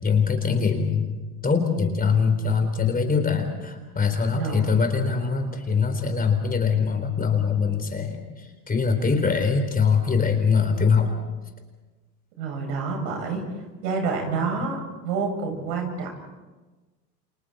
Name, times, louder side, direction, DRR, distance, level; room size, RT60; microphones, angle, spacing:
voice 1, 0.0-1.1 1.4-8.2 8.7-11.1 14.6-14.7, left 5 dB, 15° left, 5 dB, 4.1 m, -22 dB
voice 2, 4.3-4.8 12.4-13.4 13.8-16.1, right 4 dB, 65° right, 2 dB, 7.5 m, -28 dB
29.5 x 28.0 x 4.4 m, 1.2 s
hypercardioid pair, 95°, 49 cm